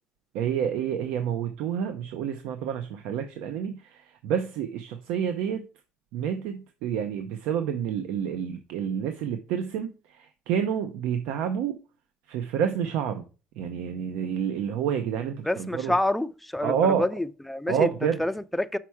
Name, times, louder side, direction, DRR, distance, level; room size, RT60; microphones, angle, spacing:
voice 1, 0.3-5.6 6.1-11.8 12.3-13.2 13.6-15.9 16.6-17.0 17.7-18.2, right 8 dB, 80° right, 0.6 m, -28 dB
voice 2, 15.4-18.8, left 1 dB, 5° left, 0.4 m, -28 dB
5.9 x 4.4 x 4.6 m
cardioid pair, 120°, 2 cm